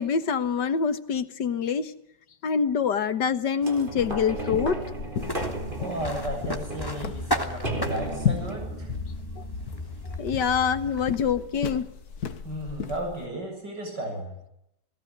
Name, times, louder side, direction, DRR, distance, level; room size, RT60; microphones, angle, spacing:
voice 1, 0.0-1.9 2.4-4.8 9.4-9.5 10.2-11.9, left 6 dB, 85° left, 12 dB, 2.1 m, -25 dB
sound 1, 3.6-10.4 11.0-11.1, right 1 dB, 30° right, 4.0 m, -35 dB
sound 2, 4.0-13.3, left 7 dB, 65° left, 2.0 m, -35 dB
sound 3, 5.2-11.2, equal, 10° left, 2.9 m, -35 dB
voice 2, 5.8-8.9 12.4-14.2, right 1 dB, 80° right, 2 dB, 8.0 m, -34 dB
29.5 x 19.0 x 9.6 m, 0.82 s
omnidirectional pair, 1.8 m